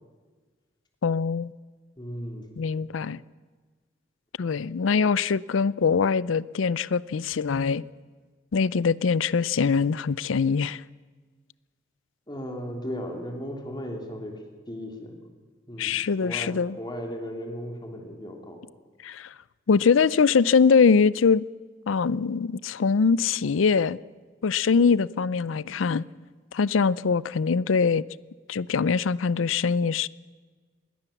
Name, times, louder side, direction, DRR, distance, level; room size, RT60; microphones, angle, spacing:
voice 1, 1.0-1.5 2.6-3.2 4.4-7.9 8.5-10.8 15.8-16.8 19.0-19.3 19.7-21.5 21.9-24.0 24.4-26.0 26.5-28.0 28.5-30.1, left 5 dB, 90° left, 0.5 m, -23 dB
voice 2, 2.0-2.5 12.3-15.2 15.7-16.0 16.2-18.6, equal, 25° left, 3.2 m, -36 dB
21.0 x 17.5 x 7.2 m
head